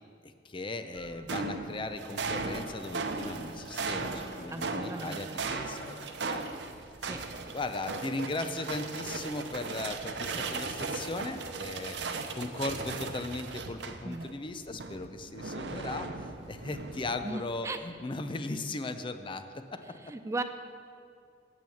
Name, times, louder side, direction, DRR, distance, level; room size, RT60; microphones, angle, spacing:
voice 1, 0.2-6.5 7.5-12.0 12.3-16.1 16.5-19.5 19.7-19.8, left 2 dB, 30° left, 9 dB, 0.6 m, -37 dB
sound 1, 1.0-14.3 14.7-17.4, right 4 dB, 85° right, 0.8 m, -37 dB
voice 2, 4.5-5.4 7.0-7.2 14.0-14.2 17.2-17.8 20.0-20.4, right 2 dB, 15° right, 8 dB, 0.4 m, -37 dB
9.2 x 8.8 x 7.1 m, 2.3 s
head